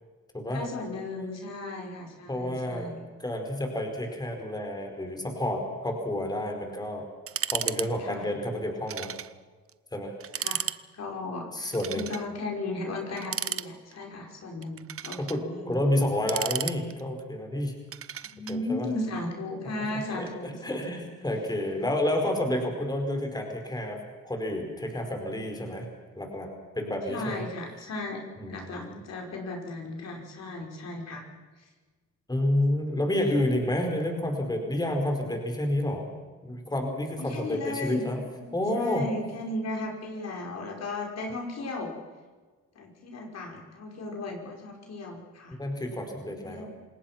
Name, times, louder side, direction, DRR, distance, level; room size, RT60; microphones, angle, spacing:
voice 1, 0.5-3.1 8.0-8.3 10.4-10.6 10.9-15.8 18.3-21.1 27.1-28.2 28.5-31.2 31.6-31.7 33.3-33.5 37.2-38.0 38.4-41.9 42.8-45.6 46.4-46.7, left 2 dB, 60° left, 1 dB, 5.5 m, -36 dB
voice 2, 2.3-2.9 3.2-7.1 7.5-9.1 9.9-10.1 11.5-12.1 15.2-17.7 18.5-18.9 19.7-24.0 24.2-25.9 26.2-26.5 26.7-27.4 28.4-29.0 32.3-36.1 36.4-38.2 38.5-39.1 45.6-46.7, left 1 dB, 15° left, 4 dB, 4.9 m, -30 dB
sound 1, 7.3-7.9 8.1-8.2 8.9-9.3 9.7-9.8 10.2-10.8 11.7-12.3 13.2-14.0 14.6-15.4 16.0-17.2 17.9-18.6, right 9 dB, 50° right, 0.9 m, -33 dB
28.0 x 18.5 x 6.0 m, 1.4 s
cardioid pair, 90°, 30 cm